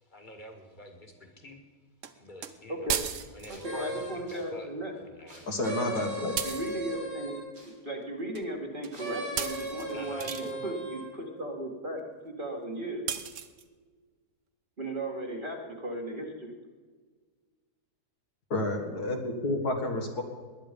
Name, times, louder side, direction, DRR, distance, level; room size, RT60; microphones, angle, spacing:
voice 1, 0.1-1.6 2.1-2.9 3.3-4.7 5.0-5.6 9.9-10.8, left 1 dB, 30° left, 5 dB, 2.0 m, -46 dB
sound 1, 2.0-2.1 2.4-2.5 2.9-3.6 6.4-6.7 8.3-8.5 8.8-9.0 9.4-10.5 13.1-13.6, right 8 dB, 55° right, 1.1 m, -34 dB
voice 2, 2.7-3.0 3.5-4.9 6.3-13.0 14.8-16.5, right 1 dB, 30° right, 0 dB, 2.1 m, -36 dB
sound 2, 3.5-4.4 5.3-7.7 8.9-11.1, right 2 dB, 85° right, 4.6 m, -38 dB
voice 3, 5.5-6.3 18.5-20.2, left 2 dB, 70° left, 3 dB, 2.3 m, -30 dB
19.5 x 10.5 x 5.3 m, 1.5 s
omnidirectional pair, 1.7 m